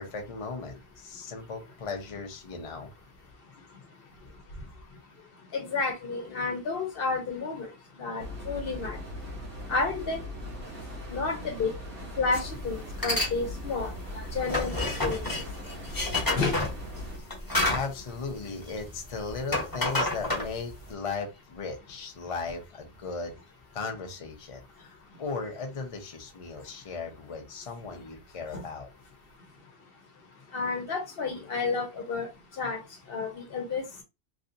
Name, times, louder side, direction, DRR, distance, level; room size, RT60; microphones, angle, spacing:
voice 1, 0.0-2.9 17.7-23.4 23.7-28.9, left 4 dB, 35° left, 0.7 m, -37 dB
voice 2, 5.5-7.7 8.0-9.0 9.7-10.2 11.1-11.7 12.2-13.9 14.3-15.2 16.3-16.6 28.5-28.6 30.5-32.3 32.6-32.8 33.1-34.0, left 4 dB, 65° left, 1.0 m, -30 dB
sound 1, 8.2-17.2, left 1 dB, 65° right, 1.6 m, -40 dB
sound 2, 12.3-12.5 12.9-13.3 13.7-19.0 19.3-20.9, left 1 dB, 20° left, 1.0 m, -29 dB
3.3 x 2.7 x 2.6 m
omnidirectional pair, 1.1 m